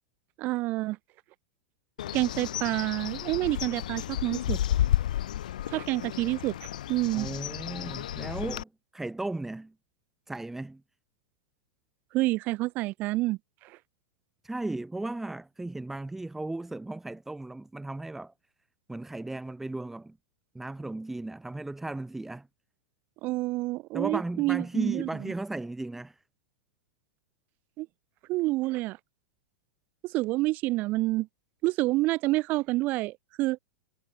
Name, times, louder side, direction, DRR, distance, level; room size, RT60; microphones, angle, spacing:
voice 1, 0.4-1.0 2.1-4.6 5.7-6.6 6.9-7.3 12.1-13.4 23.2-25.1 27.8-27.9 28.3-29.0 30.0-31.3 31.6-33.6, right 19 dB, 45° right, 0.7 m, -28 dB
Bird, 2.0-8.6, left 12 dB, 70° left, 4.4 m, -32 dB
voice 2, 7.1-9.7 10.3-10.8 14.4-18.3 18.9-20.2 20.5-22.5 23.9-26.2, right 2 dB, 5° right, 1.9 m, -36 dB
hypercardioid pair, 105°, 4 cm